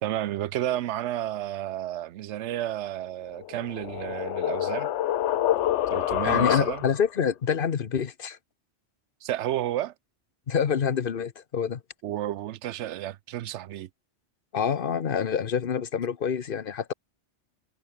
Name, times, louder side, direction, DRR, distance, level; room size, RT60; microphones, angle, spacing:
voice 1, 0.0-4.9 5.9-6.9 9.2-9.9 12.0-13.9, right 13 dB, 80° right, 0.9 m, -31 dB
sound 1, 3.3-7.1, left 12 dB, 90° left, 0.9 m, -27 dB
voice 2, 6.2-8.4 10.5-11.8 14.5-16.9, left 7 dB, 55° left, 1.1 m, -27 dB
omnidirectional pair, 1.2 m